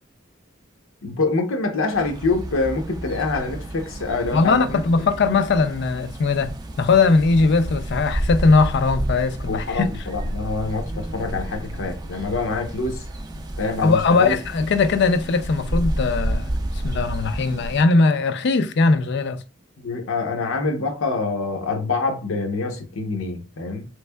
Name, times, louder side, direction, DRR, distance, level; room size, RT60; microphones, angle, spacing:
voice 1, 1.0-4.8 9.5-13.0 13.6-14.4 19.8-23.9, left 3 dB, 85° left, 0.8 m, -25 dB
sound 1, 1.9-17.8, right 1 dB, 20° right, 0.4 m, -30 dB
voice 2, 4.3-6.5 6.8-9.9 13.8-16.5 16.8-19.4, left 4 dB, 55° left, 0.4 m, -19 dB
3.4 x 3.2 x 2.2 m
head